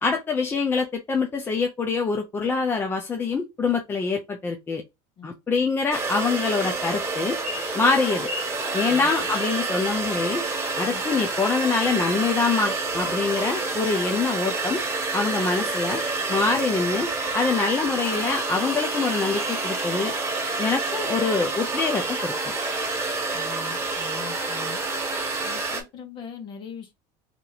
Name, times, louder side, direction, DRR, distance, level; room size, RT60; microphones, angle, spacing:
voice 1, 0.0-4.8 5.2-7.4 7.7-8.3 8.7-10.5 10.8-14.8 15.1-16.0 16.3-20.1 20.6-22.5, left 4 dB, 15° left, 0.4 m, -25 dB
sound 1, 5.9-25.8, right 3 dB, 20° right, 1.4 m, -28 dB
voice 2, 23.3-24.8 25.4-26.9, left 5 dB, 35° left, 1.0 m, -41 dB
2.9 x 2.5 x 4.0 m
cardioid pair, 145°, 13 cm